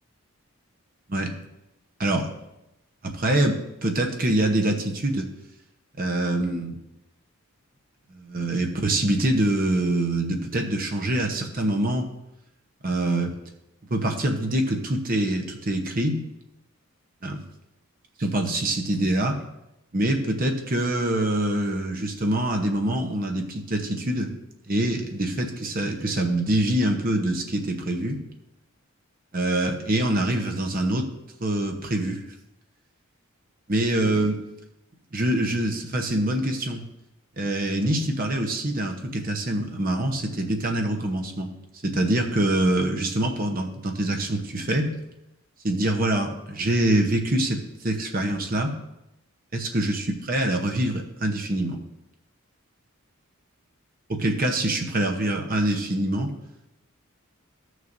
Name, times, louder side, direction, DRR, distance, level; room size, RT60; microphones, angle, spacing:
voice 1, 2.0-2.3 3.0-5.3 6.0-6.8 8.1-12.1 12.8-13.3 13.9-16.2 17.2-17.4 18.2-19.4 19.9-24.4 24.7-28.2 29.3-31.1 31.4-32.2 33.7-34.4 35.1-36.8 37.4-41.5 41.8-44.9 45.6-48.8 49.5-51.8 54.1-56.3, right 1 dB, 40° right, 3 dB, 0.9 m, -25 dB
14.5 x 6.3 x 2.6 m, 0.89 s
head